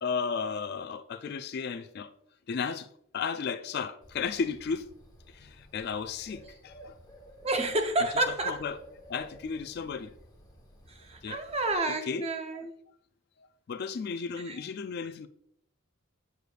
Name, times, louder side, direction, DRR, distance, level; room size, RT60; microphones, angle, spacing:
voice 1, 0.0-2.1 2.5-2.9 3.1-4.9 5.3-7.0 8.5-8.8 9.1-10.1 11.2-11.4 12.1-12.3 13.7-15.3, left 5 dB, 45° left, 0.3 m, -34 dB
Bird, 4.0-11.8, right 1 dB, 20° left, 1.1 m, -53 dB
voice 2, 7.4-8.6 10.9-12.7 14.4-14.6, right 2 dB, 25° right, 0.7 m, -30 dB
7.9 x 6.7 x 2.4 m
head